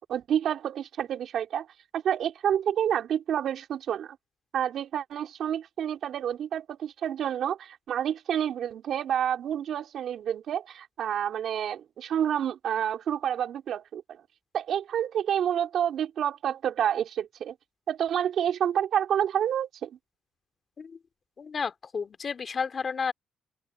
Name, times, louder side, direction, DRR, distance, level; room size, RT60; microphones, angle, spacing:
voice 1, 0.1-1.7 1.9-4.2 4.5-14.2 14.5-17.5 17.9-19.9, right 9 dB, 70° right, 3.4 m, -29 dB
voice 2, 21.4-23.1, left 5 dB, 45° left, 2.6 m, -32 dB
open air
cardioid pair, 90°, 0 cm